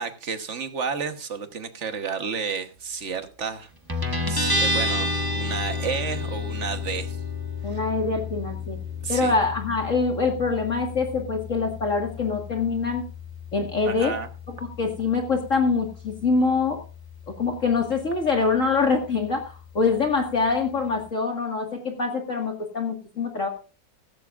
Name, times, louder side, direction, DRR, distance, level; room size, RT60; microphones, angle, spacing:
voice 1, 0.0-7.2 7.6-7.8 9.0-9.4 13.9-14.3, right 6 dB, 40° right, 7 dB, 1.4 m, -32 dB
Guitar, 3.9-21.1, left 2 dB, 15° right, 1.0 m, -32 dB
voice 2, 7.6-8.8 9.1-13.0 13.5-14.1 14.8-16.8 17.3-23.5, left 4 dB, 40° left, 2 dB, 2.1 m, -24 dB
15.5 x 14.5 x 2.5 m, 0.34 s
omnidirectional pair, 2.0 m